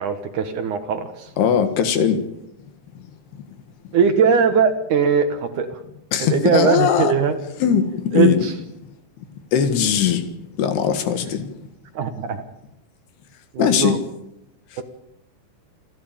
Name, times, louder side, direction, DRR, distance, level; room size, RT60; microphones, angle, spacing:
voice 1, 0.0-1.3 3.9-5.8 6.2-7.4 8.1-8.5 11.9-12.4 13.5-14.0 14.8-14.9, right 6 dB, 70° right, 2.0 m, -20 dB
voice 2, 1.4-2.2 6.1-7.1 7.6-8.4 9.5-10.2 10.6-11.5 13.6-14.0, left 8 dB, 65° left, 3.5 m, -19 dB
28.0 x 11.5 x 8.8 m
omnidirectional pair, 5.5 m